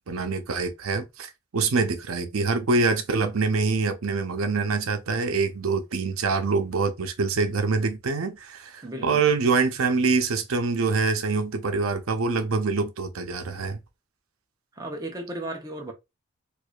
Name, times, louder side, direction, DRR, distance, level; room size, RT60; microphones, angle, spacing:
voice 1, 0.1-13.8, right 4 dB, 85° right, 0.6 m, -25 dB
voice 2, 8.8-9.3 14.7-15.9, right 1 dB, 20° right, 0.7 m, -35 dB
4.7 x 2.5 x 2.3 m
head